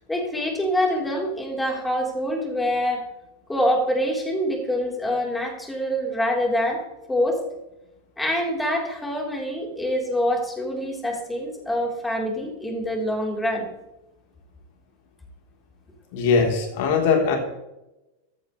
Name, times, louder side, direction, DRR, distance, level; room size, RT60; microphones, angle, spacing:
voice 1, 0.1-3.0 3.5-6.8 7.1-7.4 8.2-13.7, equal, 5° left, -1 dB, 4.1 m, -25 dB
voice 2, 16.1-17.4, left 5 dB, 50° left, 2 dB, 3.8 m, -20 dB
15.5 x 13.5 x 3.4 m, 0.95 s
figure-of-eight pair, 90°, 0 cm